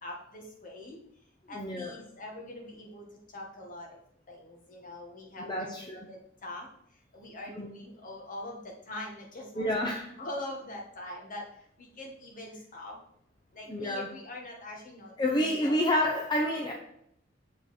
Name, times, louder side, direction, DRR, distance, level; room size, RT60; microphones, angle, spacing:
voice 1, 0.0-1.0 1.5-3.1 3.3-4.0 4.3-6.7 7.1-9.9 10.2-11.5 11.8-13.0 13.5-15.8, left 1 dB, 45° left, 0 dB, 1.8 m, -43 dB
voice 2, 1.5-1.9 5.4-6.0 7.6-7.7 9.5-10.1 13.7-14.1 15.2-16.7, left 1 dB, 25° left, 0 dB, 0.7 m, -29 dB
6.9 x 5.0 x 4.4 m, 0.71 s
head